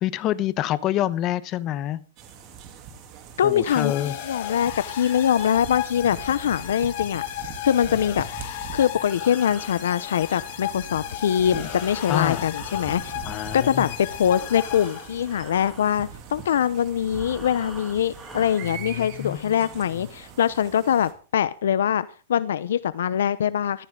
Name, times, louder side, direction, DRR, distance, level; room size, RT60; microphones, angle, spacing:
voice 1, 0.0-2.0 3.4-4.2 12.1-12.5 13.2-13.9 18.6-19.5, left 13 dB, 30° left, 16 dB, 1.0 m, -27 dB
sound 1, 2.2-21.1, right 7 dB, 30° right, 3.1 m, -42 dB
voice 2, 3.4-8.3 8.7-13.2 13.5-23.9, left 9 dB, 85° left, 16 dB, 0.8 m, -23 dB
sound 2, 3.7-15.5, left 14 dB, 50° left, 2.8 m, -35 dB
Breathing, 8.9-13.8 14.1-18.8, right 1 dB, 5° right, 3.0 m, -45 dB
14.5 x 14.5 x 3.8 m, 0.38 s
supercardioid pair, 160°, 0 cm